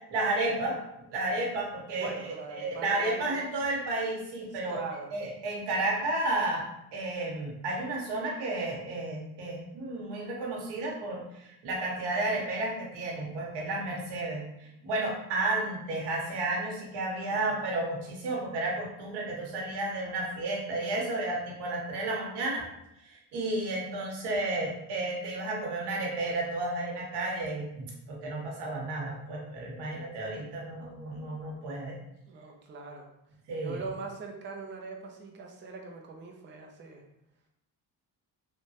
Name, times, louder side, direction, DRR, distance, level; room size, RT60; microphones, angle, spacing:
voice 1, 0.1-0.8 1.1-4.8 5.1-6.6 6.9-22.6 23.0-32.0 33.5-33.8, right 2 dB, 90° right, -2 dB, 0.9 m, -32 dB
voice 2, 2.0-3.7 4.7-5.1 17.3-17.6 32.3-33.1 33.6-37.0, right 4 dB, 30° right, 1 dB, 0.5 m, -42 dB
3.1 x 2.2 x 2.8 m, 0.82 s
cardioid pair, 90°, 40 cm